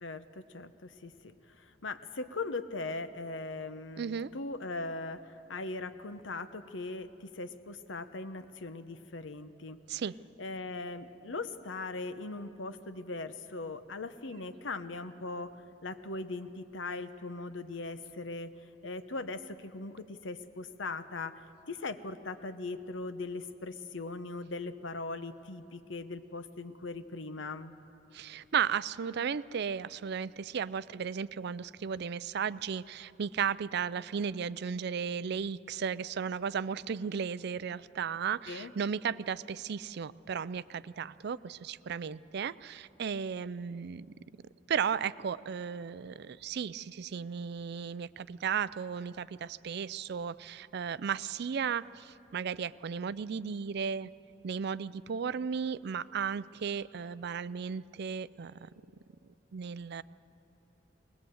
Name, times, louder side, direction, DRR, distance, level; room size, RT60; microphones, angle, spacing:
voice 1, 0.0-9.8 10.4-15.5 15.8-18.5 18.8-21.4 21.7-27.8 38.5-38.7, left 3 dB, 80° left, 10 dB, 0.9 m, -40 dB
voice 2, 4.0-4.3 9.9-10.1 28.1-44.1 44.7-54.1 54.4-58.7 59.5-60.0, right 7 dB, 60° right, 17 dB, 0.4 m, -35 dB
20.5 x 20.0 x 7.9 m, 2.9 s
head